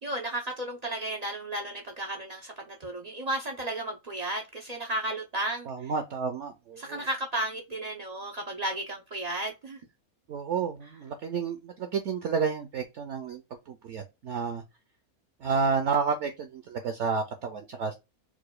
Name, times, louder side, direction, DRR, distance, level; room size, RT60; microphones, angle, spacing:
voice 1, 0.0-5.9 6.8-9.8, right 1 dB, 85° right, 0.3 m, -34 dB
voice 2, 5.7-7.0 10.3-14.6 15.4-17.9, right 5 dB, 65° right, 0.8 m, -30 dB
4.8 x 2.2 x 2.2 m
omnidirectional pair, 1.6 m